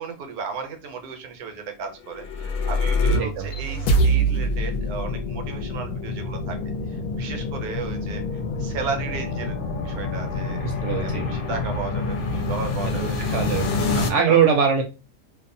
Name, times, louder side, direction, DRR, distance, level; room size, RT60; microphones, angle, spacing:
voice 1, 0.0-6.6 6.9-13.2 13.7-14.5, right 5 dB, 85° right, 5 dB, 1.1 m, -35 dB
sound 1, 2.0-14.1, left 1 dB, 75° left, 1.0 m, -26 dB
voice 2, 3.1-3.5 10.6-11.3 13.0-13.7 14.1-14.8, right 7 dB, 65° right, 3 dB, 0.8 m, -22 dB
2.7 x 2.0 x 2.6 m, 0.31 s
omnidirectional pair, 1.5 m